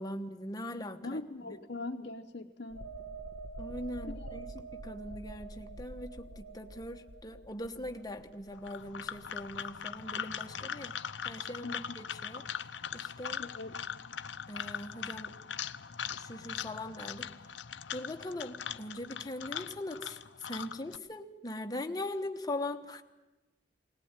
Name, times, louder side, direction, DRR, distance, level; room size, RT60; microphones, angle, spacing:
voice 1, 0.0-1.5 3.6-10.9 11.2-12.4 12.9-13.4 14.5-15.4 16.2-17.3 17.9-20.2 20.4-23.0, left 1 dB, 20° left, 5 dB, 1.2 m, -41 dB
voice 2, 1.0-2.8 4.0-4.4 11.6-12.0 13.4-13.7, left 2 dB, 60° left, 0 dB, 1.0 m, -41 dB
sound 1, 2.7-10.1 10.5-10.7, right 2 dB, 85° right, 1.6 m, -46 dB
sound 2, 8.6-21.0, left 8 dB, 85° left, 0.7 m, -41 dB
20.5 x 19.0 x 8.9 m, 1.1 s
head